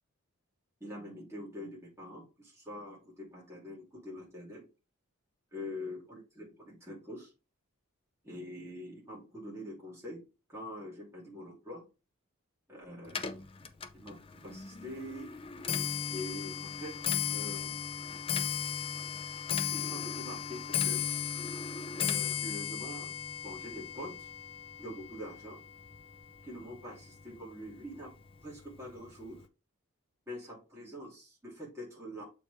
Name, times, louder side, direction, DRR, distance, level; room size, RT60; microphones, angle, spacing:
voice 1, 0.8-4.7 5.5-7.3 8.2-11.8 12.7-13.3 13.9-15.3 16.1-17.0 17.3-17.7 19.6-21.0 22.0-23.1 23.4-24.3 24.8-25.6 26.4-28.1 28.4-29.4 30.3-32.2, left 1 dB, 10° right, -5 dB, 2.5 m, -44 dB
Clock, 13.1-26.4 26.8-27.2 28.0-28.1 28.4-28.8 29.1-29.2, left 8 dB, 25° left, 0.5 m, -36 dB
6.9 x 4.5 x 3.3 m, 0.31 s
head